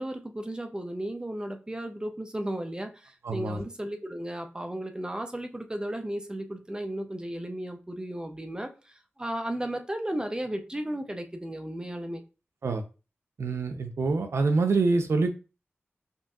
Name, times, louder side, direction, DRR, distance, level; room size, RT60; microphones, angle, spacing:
voice 1, 0.0-12.2, right 1 dB, 20° right, 0.6 m, -34 dB
voice 2, 3.2-3.6 12.6-12.8 13.4-15.3, right 3 dB, 80° right, 0.6 m, -25 dB
5.4 x 2.6 x 2.4 m
wide cardioid pair, 65°, 4 cm